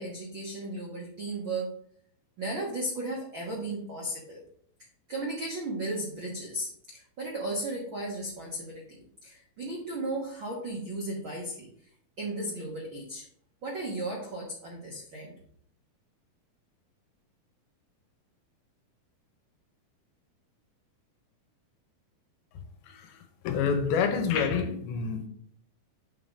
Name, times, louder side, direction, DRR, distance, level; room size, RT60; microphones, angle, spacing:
voice 1, 0.0-1.8 2.4-4.4 5.1-11.7 12.2-13.2 13.6-15.3, right 1 dB, 75° right, -2 dB, 1.1 m, -35 dB
voice 2, 23.4-25.3, left 6 dB, 80° left, 6 dB, 2.7 m, -27 dB
7.8 x 3.8 x 5.2 m, 0.62 s
omnidirectional pair, 4.4 m